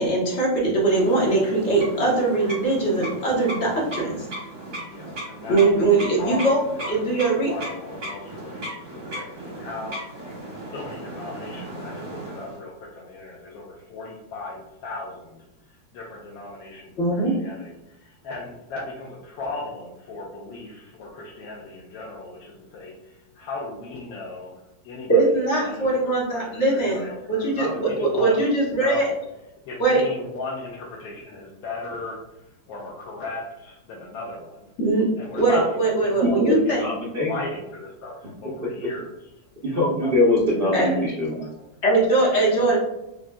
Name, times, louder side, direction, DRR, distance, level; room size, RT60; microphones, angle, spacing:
voice 1, 0.0-4.3 5.5-7.5 17.0-17.4 25.1-27.0 27.3-29.0 29.8-30.0 34.8-35.1 35.3-36.8 40.7-40.9 41.8-42.8, right 2 dB, 45° left, -3 dB, 1.1 m, -21 dB
sound 1, 0.8-12.6, right 1 dB, 85° right, 2.1 m, -36 dB
voice 2, 4.8-5.9 6.2-7.0 7.5-10.3 10.6-25.2 25.6-29.2 29.7-32.2 32.7-34.7 35.2-36.9 37.3-40.3 40.8-41.0 41.4-41.6, left 2 dB, 80° left, -3 dB, 1.3 m, -36 dB
voice 3, 36.4-37.3 39.7-41.4, left 2 dB, 60° right, -5 dB, 0.5 m, -22 dB
6.2 x 2.2 x 2.2 m, 0.90 s
omnidirectional pair, 2.0 m